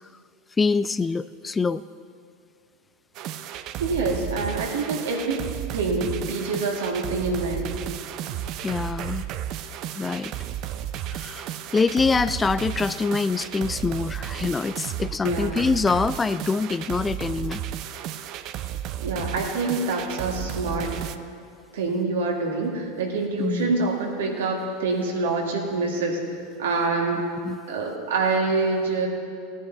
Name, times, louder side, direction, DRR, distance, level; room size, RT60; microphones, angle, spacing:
voice 1, 0.6-1.8 8.6-9.2 10.0-10.3 11.1-17.6 23.4-23.9 27.4-27.6, left 4 dB, 20° left, 15 dB, 0.3 m, -25 dB
sound 1, 3.1-21.2, right 11 dB, 50° right, 0.6 m, -33 dB
voice 2, 3.8-5.4 5.7-7.8 15.2-15.6 19.0-20.9 21.7-27.3 27.7-29.1, right 3 dB, 80° right, 0 dB, 2.1 m, -26 dB
17.0 x 10.0 x 4.0 m, 2.3 s
hypercardioid pair, 95°, 0 cm